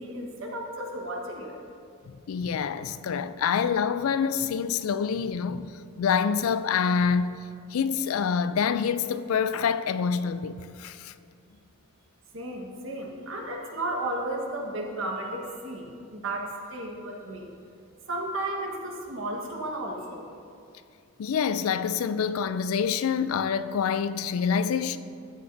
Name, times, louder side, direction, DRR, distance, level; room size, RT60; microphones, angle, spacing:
voice 1, 0.0-1.6 12.3-17.5 18.1-20.3, right 1 dB, 75° right, 1.3 m, -34 dB
voice 2, 2.3-7.3 7.7-11.1 21.2-25.0, left 6 dB, 90° left, 0.4 m, -26 dB
13.5 x 8.4 x 2.6 m
head